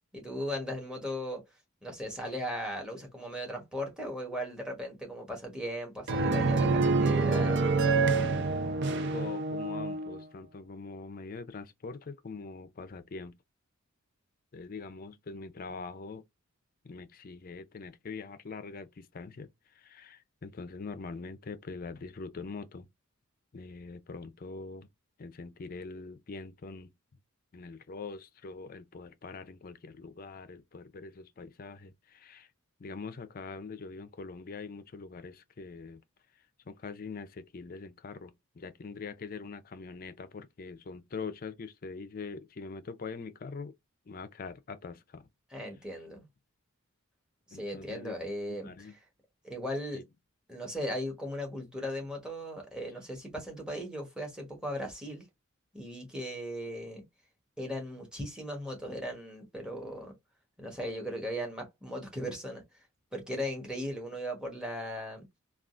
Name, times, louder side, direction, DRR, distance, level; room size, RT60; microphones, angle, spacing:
voice 1, 0.1-1.4 1.8-8.2 45.5-46.3 47.5-49.0 49.4-50.0 50.5-55.3 55.7-57.0 57.6-60.1 60.6-62.6 63.1-65.4, equal, 5° right, 1.1 m, -37 dB
sound 1, 6.1-10.2, right 3 dB, 55° right, 0.5 m, -27 dB
voice 2, 9.1-13.4 14.5-16.2 16.8-19.5 19.7-22.9 23.5-24.9 25.2-26.9 27.5-32.5 32.8-36.0 36.7-43.7 44.1-45.2 47.5-48.1 48.6-48.9 49.9-50.0, left 4 dB, 40° left, 0.4 m, -43 dB
3.6 x 2.4 x 2.4 m
head